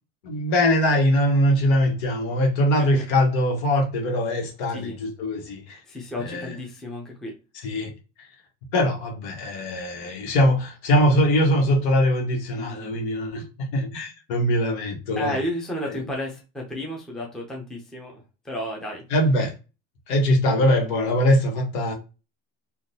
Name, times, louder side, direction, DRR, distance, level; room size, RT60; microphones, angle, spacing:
voice 1, 0.2-5.8 6.2-6.5 7.5-7.9 8.7-13.4 13.7-15.4 15.8-16.0 19.1-19.5 20.1-21.9, equal, 75° left, 1.4 m, -22 dB
voice 2, 5.9-7.3 12.6-13.0 15.2-19.0, left 1 dB, ahead, 0.5 m, -32 dB
3.6 x 2.4 x 2.7 m
cardioid pair, 165°, 33 cm